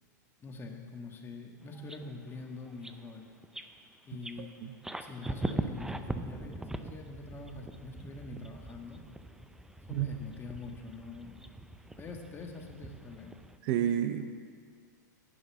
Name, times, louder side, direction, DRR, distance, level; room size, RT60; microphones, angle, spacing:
voice 1, 0.4-3.3 4.0-4.5 5.0-9.0 9.9-11.5 12.0-13.4, left 3 dB, 20° left, 2 dB, 1.4 m, -44 dB
sound 1, 1.7-2.4 2.7-3.0 3.4-3.8 4.2-13.6, right 2 dB, 5° right, 0.5 m, -41 dB
voice 2, 4.4-4.7 9.9-10.1 13.6-14.4, right 10 dB, 50° right, 10 dB, 0.6 m, -31 dB
11.5 x 5.5 x 8.6 m, 2.1 s
hypercardioid pair, 110°, 10 cm